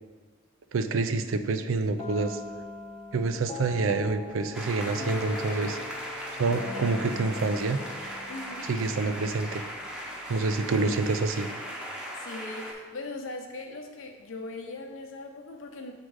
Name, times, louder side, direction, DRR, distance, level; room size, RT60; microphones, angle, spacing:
voice 1, 0.7-2.4 3.1-6.1 6.4-7.8 8.6-9.6 10.3-11.5, right 3 dB, 75° right, 9 dB, 0.4 m, -27 dB
sound 1, 2.0-9.7, left 4 dB, 25° left, 0.5 m, -41 dB
sound 2, 4.5-12.7, equal, 5° right, 0.7 m, -38 dB
voice 2, 8.3-8.7 12.1-15.9, left 2 dB, 80° left, 2 dB, 0.8 m, -40 dB
6.2 x 3.8 x 4.8 m, 1.4 s
head